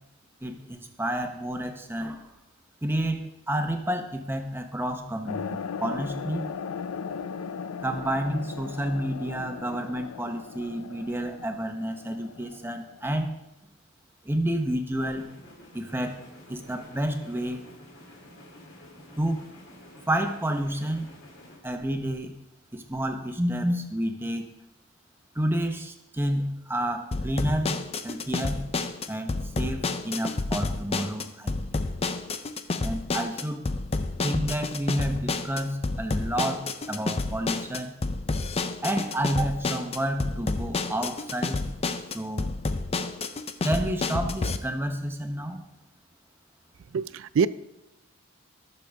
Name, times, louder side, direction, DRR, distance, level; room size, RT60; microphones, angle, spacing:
voice 1, 0.4-2.3 2.8-3.2 3.5-6.5 7.8-13.3 14.2-15.2 15.7-16.2 16.5-17.6 19.2-19.4 20.1-21.1 21.6-22.3 22.7-24.4 25.3-27.7 28.0-28.6 29.1-31.6 32.8-33.6 34.2-36.6 36.9-37.9 38.8-41.6 42.1-42.5 43.6-45.6, right 1 dB, 10° right, 5 dB, 0.8 m, -29 dB
sound 1, 5.3-13.2, left 6 dB, 85° left, 0.5 m, -38 dB
sound 2, 15.0-21.6, left 1 dB, 65° left, 2.7 m, -50 dB
sound 3, 27.1-44.6, left 3 dB, 30° left, 0.5 m, -30 dB
voice 2, 46.9-47.5, right 6 dB, 70° right, 17 dB, 0.4 m, -24 dB
17.0 x 6.8 x 3.5 m, 0.90 s
head